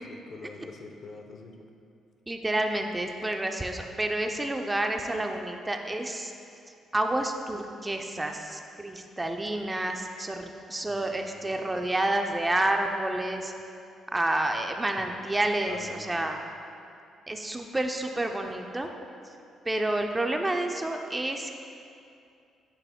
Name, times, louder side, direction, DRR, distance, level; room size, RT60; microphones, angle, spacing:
voice 1, 0.0-1.6 10.9-11.6 15.0-15.2 15.7-16.2, left 4 dB, 60° left, 3 dB, 0.6 m, -45 dB
voice 2, 2.3-6.3 6.9-13.5 14.1-16.4 17.3-18.9 19.7-21.6, right 1 dB, 15° right, 4 dB, 0.4 m, -29 dB
8.2 x 3.3 x 3.5 m, 2.5 s
cardioid pair, 90°, 0 cm